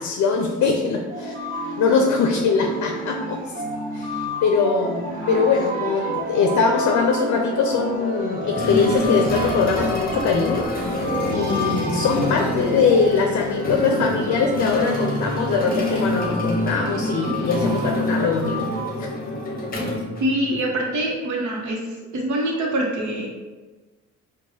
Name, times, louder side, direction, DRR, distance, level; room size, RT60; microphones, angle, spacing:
voice 1, 0.0-1.3 1.6-3.4 3.9-10.7 11.3-18.7 19.0-19.1, left 5 dB, 65° left, 2 dB, 0.5 m, -22 dB
sound 1, 1.1-19.0, right 1 dB, 25° right, 1.3 m, -32 dB
sound 2, 5.3-19.7, equal, ahead, 1.1 m, -32 dB
sound 3, 8.6-20.8, left 1 dB, 30° left, 0.8 m, -27 dB
voice 2, 20.2-21.8 22.1-23.3, right 1 dB, 70° right, -1 dB, 1.0 m, -24 dB
4.5 x 2.3 x 2.7 m, 1.3 s
cardioid pair, 90°, 30 cm